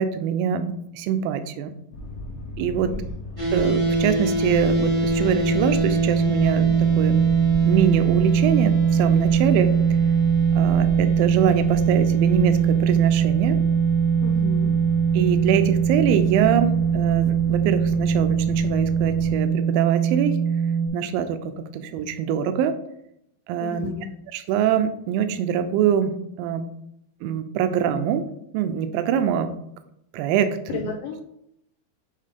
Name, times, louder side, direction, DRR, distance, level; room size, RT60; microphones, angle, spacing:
voice 1, 0.0-1.7 2.6-2.9 3.5-7.3 7.6-9.7 10.6-13.6 15.1-20.4 20.9-22.8 23.5-23.9 24.3-26.6 27.2-28.2 28.5-29.5 30.1-30.8, right 8 dB, 80° right, 9 dB, 2.1 m, -24 dB
Boat Water vehicle, 1.9-19.3, left 3 dB, 65° left, 2.4 m, -36 dB
sound 1, 3.4-20.9, right 6 dB, 45° right, 0.7 m, -21 dB
voice 2, 14.2-14.7 23.6-24.1 30.7-31.2, left 5 dB, 80° left, 2 dB, 2.0 m, -33 dB
7.4 x 3.7 x 5.1 m, 0.77 s
omnidirectional pair, 4.5 m